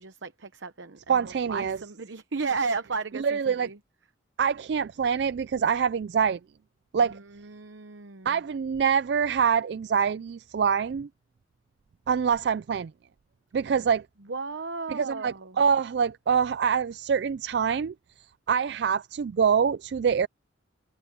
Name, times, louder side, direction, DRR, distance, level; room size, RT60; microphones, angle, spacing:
voice 1, 0.0-3.8 7.0-8.4 14.3-15.6, right 4 dB, 75° right, 0.9 m, -34 dB
voice 2, 1.1-1.8 3.2-3.7 4.4-6.4 6.9-7.2 8.3-11.1 12.1-12.9 13.5-14.0 14.9-20.3, right 6 dB, 60° right, 0.3 m, -25 dB
head